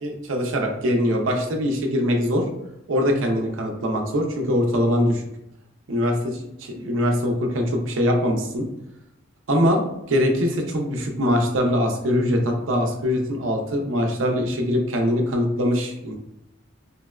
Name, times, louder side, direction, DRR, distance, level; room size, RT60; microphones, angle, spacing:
voice 1, 0.0-2.4 2.9-5.2 5.9-8.7 9.5-16.1, equal, 80° right, 2 dB, 0.6 m, -22 dB
3.9 x 2.1 x 2.3 m, 0.84 s
head